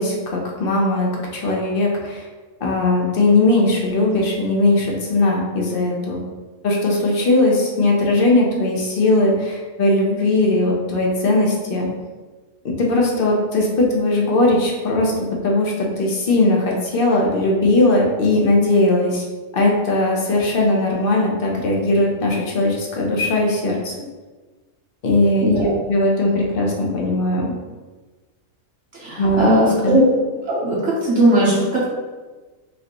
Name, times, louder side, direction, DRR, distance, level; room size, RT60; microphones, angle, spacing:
voice 1, 0.0-2.2 2.6-6.2 6.6-11.9 12.8-15.1 15.4-19.2 19.5-23.9 25.0-27.5 29.2-29.5 29.8-30.0, left 2 dB, 45° left, -2 dB, 0.9 m, -19 dB
voice 2, 29.0-30.0 30.5-31.9, right 1 dB, 60° right, -6 dB, 1.2 m, -18 dB
5.1 x 2.6 x 3.0 m, 1.3 s
omnidirectional pair, 1.5 m